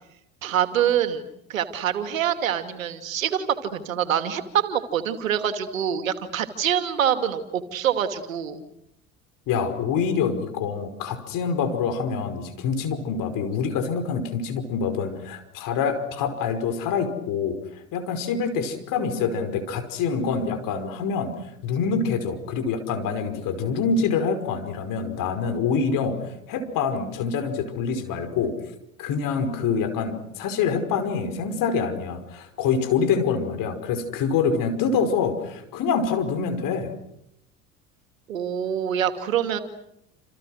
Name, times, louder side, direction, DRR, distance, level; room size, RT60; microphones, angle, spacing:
voice 1, 0.4-8.6 38.3-39.6, right 9 dB, 75° right, 9 dB, 2.5 m, -25 dB
voice 2, 9.5-21.3 21.6-28.5 29.0-36.9, left 5 dB, 55° left, 8 dB, 5.4 m, -26 dB
29.0 x 28.5 x 6.5 m, 0.80 s
figure-of-eight pair, 65°, 40 cm